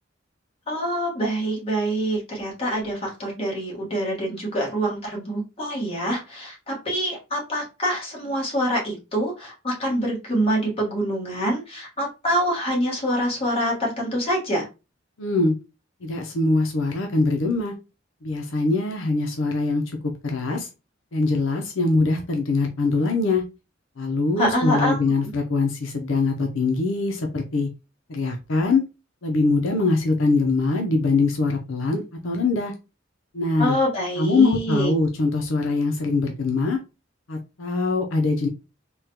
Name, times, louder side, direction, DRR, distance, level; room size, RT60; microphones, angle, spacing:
voice 1, 0.7-14.7 24.4-25.0 33.6-34.9, right 1 dB, 30° left, 1.4 m, -25 dB
voice 2, 15.2-15.6 16.0-17.7 18.2-19.8 20.2-20.7 21.1-23.4 24.0-27.7 28.1-28.8 29.2-32.7 33.3-33.8 34.2-36.8 37.3-38.5, left 3 dB, 85° left, 0.6 m, -23 dB
3.5 x 2.2 x 2.8 m
head